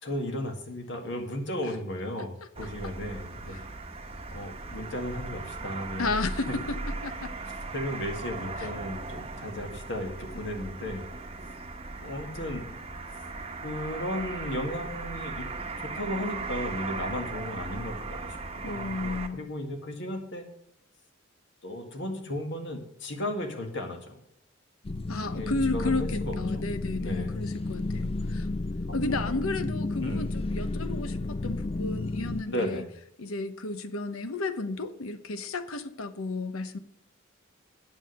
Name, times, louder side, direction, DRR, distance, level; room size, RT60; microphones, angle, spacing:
voice 1, 0.0-3.6 4.3-6.1 7.7-11.1 12.0-12.7 13.6-15.5 15.8-18.4 18.7-20.4 21.6-24.2 25.2-26.7 27.0-27.3 28.9-29.7 30.0-30.3 32.5-32.9, left 1 dB, 60° left, 4 dB, 2.0 m, -35 dB
sound 1, 2.5-19.3, right 3 dB, 30° right, 1.0 m, -38 dB
voice 2, 6.0-6.8 7.0-7.3 8.6-8.7 18.6-19.4 25.1-28.5 28.9-32.8 33.2-36.8, left 3 dB, 85° left, 11 dB, 0.9 m, -33 dB
sound 2, 24.8-32.4, left 2 dB, 25° left, 0.4 m, -32 dB
8.9 x 7.5 x 6.5 m, 0.74 s
head